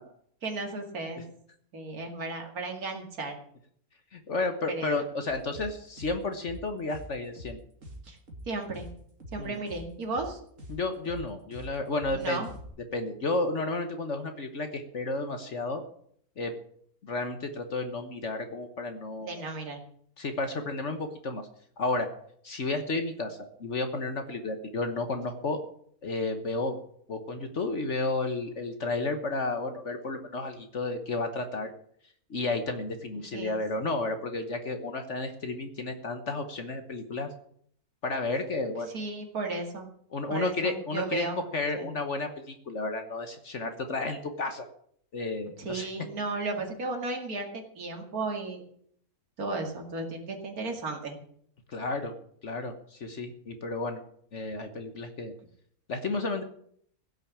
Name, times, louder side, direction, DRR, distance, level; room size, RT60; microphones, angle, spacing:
voice 1, 0.4-1.2 1.7-3.4 4.7-5.0 8.1-8.2 8.4-8.9 9.3-10.4 12.1-12.5 19.2-19.8 33.3-33.6 38.9-39.9 40.3-41.4 41.8-41.9 45.6-48.7 49.4-51.2, right 3 dB, 75° right, 2 dB, 2.7 m, -34 dB
voice 2, 4.1-7.6 9.4-9.6 10.7-12.4 12.9-15.8 16.4-16.5 17.0-19.4 20.2-21.5 21.8-22.1 22.4-25.6 26.0-26.8 27.1-31.7 32.3-37.3 38.0-38.9 40.1-41.3 41.5-44.7 45.1-45.9 51.7-52.1 52.4-54.0 54.3-55.3 55.9-56.4, left 3 dB, 55° left, 7 dB, 1.5 m, -32 dB
sound 1, 5.3-12.7, right 1 dB, 60° right, 2.7 m, -45 dB
16.0 x 6.5 x 8.6 m, 0.64 s
omnidirectional pair, 1.6 m